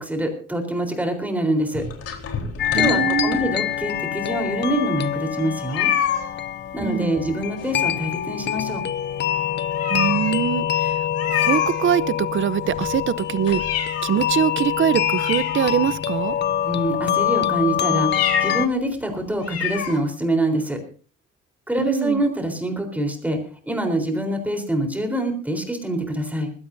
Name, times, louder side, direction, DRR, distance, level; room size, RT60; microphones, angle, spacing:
voice 1, 0.0-1.9 2.7-5.9 6.7-8.8 16.6-20.8 21.7-26.5, right 1 dB, 5° right, 3.9 m, -25 dB
sound 1, 1.7-3.9 4.5-4.6 4.8-4.9 5.7-6.3 7.6-8.1 8.5-8.6 9.1-9.2 9.7-10.4 11.1-12.2 12.6-14.3 14.7-14.8 15.1-16.1 16.7-17.0 18.0-18.7 19.0-19.1 19.4-20.0, left 8 dB, 50° left, 3.9 m, -27 dB
sound 2, 2.6-18.7, left 10 dB, 35° left, 0.6 m, -25 dB
voice 2, 2.7-3.5 6.8-7.3 9.9-11.0 11.3-16.3 21.8-22.2, right 10 dB, 40° right, 0.7 m, -23 dB
20.5 x 16.0 x 2.7 m
cardioid pair, 155°, 31 cm